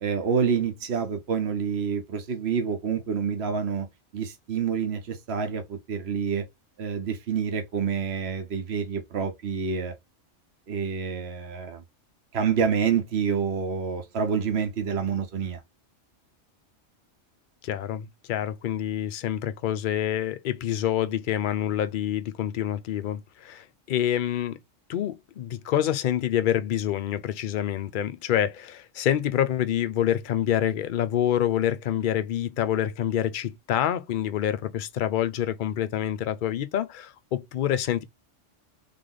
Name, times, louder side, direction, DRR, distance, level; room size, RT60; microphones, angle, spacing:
voice 1, 0.0-3.9 4.1-6.4 6.8-9.9 10.7-11.8 12.3-15.6, right 6 dB, 60° right, 1.2 m, -27 dB
voice 2, 17.6-24.6 24.9-38.0, left 11 dB, 55° left, 0.6 m, -27 dB
3.7 x 3.3 x 3.8 m
omnidirectional pair, 1.3 m